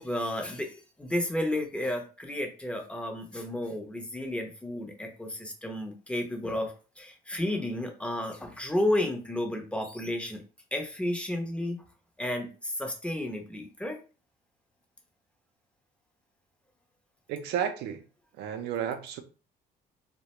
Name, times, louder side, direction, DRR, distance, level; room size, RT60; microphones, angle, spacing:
voice 1, 0.0-10.4 10.7-11.8 12.2-14.0, left 1 dB, 5° left, 0.6 m, -32 dB
voice 2, 17.3-18.0 18.4-19.2, right 9 dB, 80° right, 0.5 m, -32 dB
2.4 x 2.1 x 2.9 m
cardioid pair, 110°, 17 cm